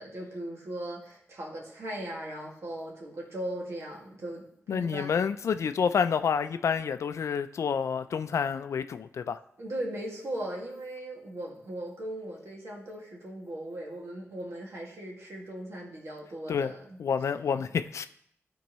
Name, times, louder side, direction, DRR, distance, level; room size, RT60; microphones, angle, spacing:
voice 1, 0.0-5.1 9.6-17.0, right 1 dB, 65° right, 2.0 m, -38 dB
voice 2, 4.7-9.4 16.5-16.7 17.0-18.1, left 6 dB, 75° left, 0.4 m, -28 dB
13.5 x 4.5 x 3.1 m
wide cardioid pair, 120°, 5 cm